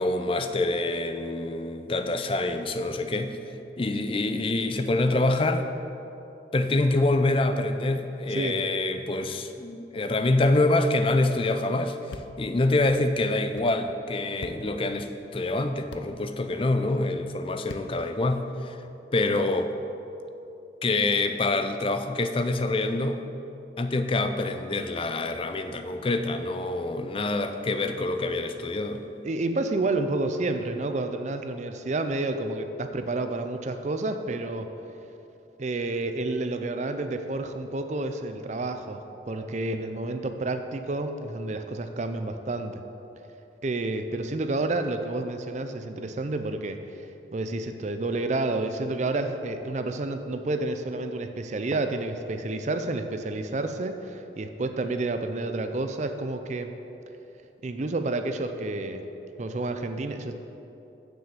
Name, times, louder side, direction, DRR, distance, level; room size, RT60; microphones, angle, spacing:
voice 1, 0.0-3.4 3.8-5.7 6.5-12.0 12.4-18.8 19.1-19.7 20.8-23.2 23.8-29.0, left 2 dB, 30° left, 8 dB, 0.4 m, -26 dB
voice 2, 8.3-8.7 29.2-34.7 35.6-42.8 43.6-46.8 47.3-56.7 57.6-59.0 59.4-60.3, right 2 dB, 40° right, 7 dB, 0.5 m, -30 dB
sound 1, 12.1-12.3 12.9-13.0 13.5-13.7 14.4-14.6 15.9-16.1 17.7-17.9, left 3 dB, 80° left, 0.5 m, -40 dB
7.3 x 6.4 x 6.7 m, 2.9 s
head